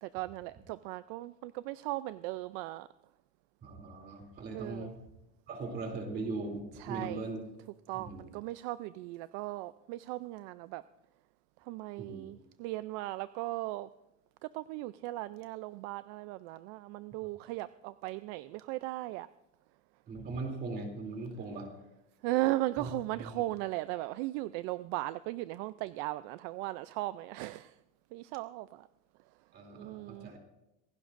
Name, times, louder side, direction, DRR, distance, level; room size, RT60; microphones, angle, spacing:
voice 1, 0.0-2.9 4.5-4.9 6.8-7.3 7.9-10.8 11.7-13.9 14.5-19.3 22.2-27.7 28.1-28.9 29.7-30.3, right 18 dB, 65° right, 0.4 m, -37 dB
voice 2, 3.6-5.0 5.5-7.4 7.9-8.3 12.0-12.3 20.1-21.7 22.8-23.3 29.5-30.4, right 3 dB, 30° right, 2.9 m, -40 dB
26.0 x 17.0 x 2.5 m
cardioid pair, 175°, 35 cm